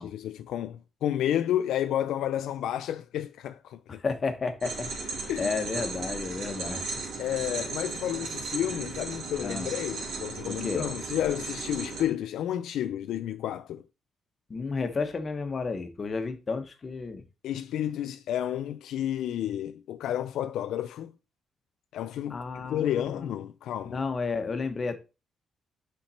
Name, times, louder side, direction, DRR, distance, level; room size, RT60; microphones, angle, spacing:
voice 1, 0.0-4.0 5.3-5.5 7.2-13.8 17.4-21.1 21.9-24.0, left 11 dB, 80° left, 0.3 m, -31 dB
voice 2, 4.0-4.9 5.4-6.8 9.4-9.8 10.4-10.9 14.5-17.2 22.3-23.3 23.8-25.0, left 4 dB, 40° left, 1.1 m, -32 dB
sound 1, 4.6-12.1, right 3 dB, 80° right, 2.3 m, -36 dB
5.8 x 4.4 x 4.1 m
cardioid pair, 90°, 0 cm